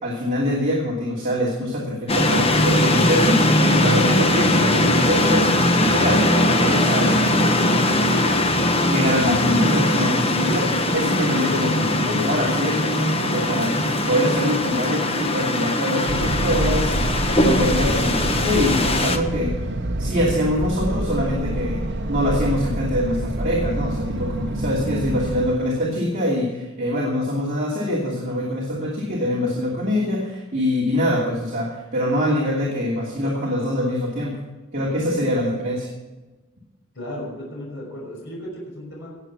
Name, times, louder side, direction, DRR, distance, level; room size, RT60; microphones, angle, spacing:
voice 1, 0.0-8.3 8.8-16.9 17.4-19.6 20.0-34.4 34.7-35.9, left 1 dB, 40° right, -5 dB, 2.8 m, -24 dB
sound 1, 2.1-19.2, left 1 dB, 30° left, 1.1 m, -20 dB
sound 2, 16.1-25.5, right 1 dB, 55° right, 1.1 m, -26 dB
voice 2, 36.9-39.2, left 1 dB, 60° left, -3 dB, 5.8 m, -35 dB
18.5 x 7.8 x 6.0 m, 1.2 s
head